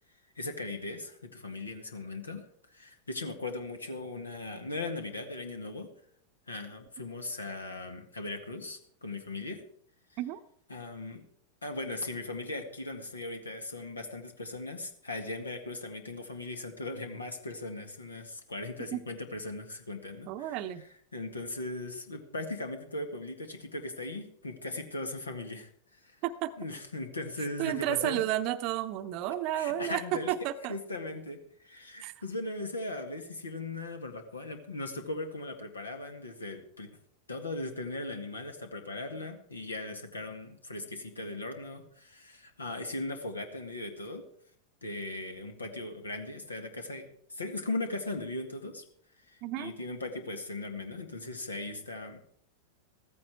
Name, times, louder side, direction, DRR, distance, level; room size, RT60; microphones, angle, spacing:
voice 1, 0.4-2.4 2.7-5.9 6.5-9.6 10.1-10.2 10.7-11.2 11.6-26.2 26.6-28.2 29.5-30.3 30.7-36.9 37.3-44.2 44.8-48.8 49.3-52.2, left 2 dB, 75° left, 6 dB, 1.9 m, -38 dB
voice 2, 20.3-20.8 26.2-26.5 27.6-30.0 30.3-30.7 32.0-32.1 49.4-49.7, right 13 dB, 40° right, 9 dB, 0.8 m, -32 dB
15.0 x 15.0 x 4.6 m, 0.63 s
figure-of-eight pair, 90°, 0 cm